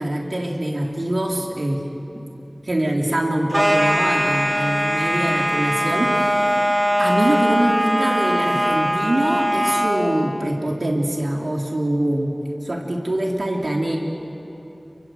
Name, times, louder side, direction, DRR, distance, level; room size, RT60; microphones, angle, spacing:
voice 1, 0.0-1.8 2.1-2.3 2.6-6.7 7.0-12.3 12.6-14.0, right 1 dB, 75° right, 0 dB, 3.8 m, -24 dB
sound 1, 3.5-10.0, equal, 25° right, 5.0 m, -21 dB
29.0 x 24.0 x 8.2 m, 2.9 s
wide cardioid pair, 50°, 0 cm